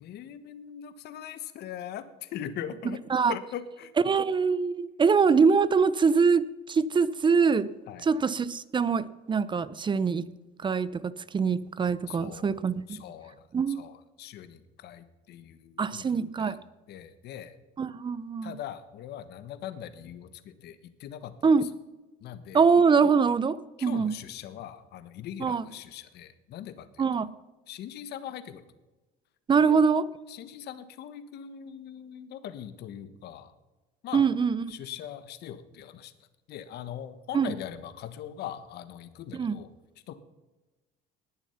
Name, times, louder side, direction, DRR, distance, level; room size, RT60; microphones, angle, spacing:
voice 1, 0.0-3.0 3.3-3.9 7.9-8.0 12.1-12.6 12.9-13.5 13.8-16.1 16.4-16.6 16.9-17.5 18.4-21.3 22.2-22.6 23.8-27.0 27.7-28.6 29.6-29.8 30.3-33.5 34.0-34.3 34.7-36.1 36.5-39.7 40.1-40.2, left 10 dB, 60° left, 12 dB, 1.3 m, -41 dB
voice 2, 4.1-7.7 8.0-10.2 10.6-13.0 13.5-13.9 15.8-16.6 17.8-18.5 21.4-21.7 22.5-24.1 25.4-25.7 27.0-27.3 29.5-30.1 34.1-34.6 37.3-37.5 39.3-39.6, right 5 dB, 25° right, 18 dB, 0.7 m, -24 dB
19.5 x 7.1 x 5.8 m, 1.1 s
supercardioid pair, 105°, 19 cm